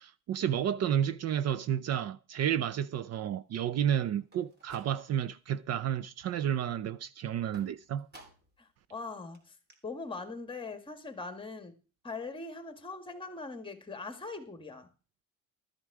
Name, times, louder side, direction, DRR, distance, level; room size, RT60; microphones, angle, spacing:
voice 1, 0.0-8.1, right 9 dB, 50° right, 0.6 m, -31 dB
sound 1, 4.2-5.4 5.8-6.3 7.5-8.6 9.0-9.1 9.3-9.4 9.7-9.8, right 2 dB, 30° right, 2.9 m, -56 dB
voice 2, 8.6-9.5 9.8-11.7 12.0-14.9, left 3 dB, 15° left, 1.7 m, -41 dB
13.0 x 9.8 x 4.8 m
cardioid pair, 135°, 34 cm